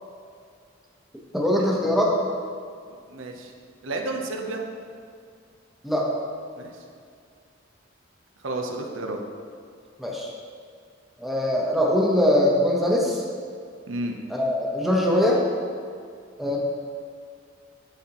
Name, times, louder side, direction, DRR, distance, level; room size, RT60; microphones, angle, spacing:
voice 1, 1.3-2.1 5.8-6.1 10.0-10.3 11.2-13.2 14.3-15.4 16.4-16.6, left 1 dB, ahead, -2 dB, 0.9 m, -22 dB
voice 2, 3.1-3.5 3.8-4.6 6.6-6.7 8.4-9.2 13.9-14.2, right 2 dB, 90° right, 2 dB, 0.7 m, -31 dB
11.5 x 4.2 x 3.0 m, 2.2 s
head